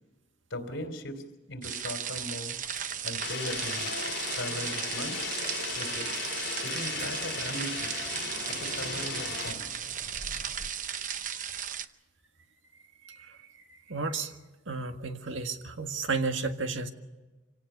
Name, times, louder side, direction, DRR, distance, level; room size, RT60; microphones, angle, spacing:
voice 1, 0.5-2.6 3.0-3.9 4.2-5.2 5.8-6.1 6.6-7.9 8.5-9.8, left 1 dB, 75° left, 7 dB, 3.2 m, -39 dB
sound 1, 1.6-11.9, right 9 dB, 40° right, 0.8 m, -36 dB
sound 2, 2.6-10.7, left 3 dB, 35° left, 2.5 m, -50 dB
sound 3, 3.2-9.5, left 6 dB, 60° left, 4.1 m, -36 dB
voice 2, 13.0-14.3 14.7-16.9, right 4 dB, 75° right, 6 dB, 1.8 m, -33 dB
26.0 x 17.5 x 6.8 m, 1.2 s
head